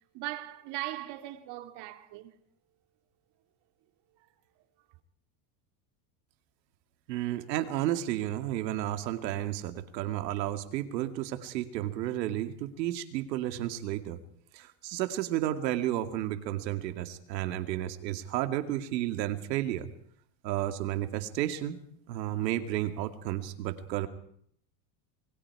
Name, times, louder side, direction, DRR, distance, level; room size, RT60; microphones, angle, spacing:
voice 1, 0.1-2.4 4.2-4.3, right 16 dB, 55° right, 2.2 m, -39 dB
voice 2, 7.1-14.2 14.5-19.9 20.4-21.8 22.1-24.1, right 13 dB, 90° right, 2.4 m, -32 dB
27.0 x 21.5 x 4.8 m
supercardioid pair, 130°, 49 cm